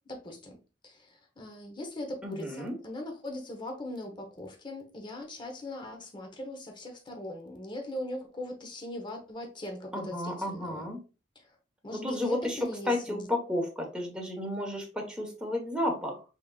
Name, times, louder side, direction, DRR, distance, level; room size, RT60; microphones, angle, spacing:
voice 1, 0.1-0.5 0.8-10.9 11.3-11.5 11.8-13.3, left 1 dB, 25° left, 1.0 m, -40 dB
voice 2, 2.2-2.7 9.9-11.0 11.9-12.6 12.9-16.2, left 1 dB, 5° right, 1.3 m, -32 dB
5.4 x 3.7 x 2.4 m
head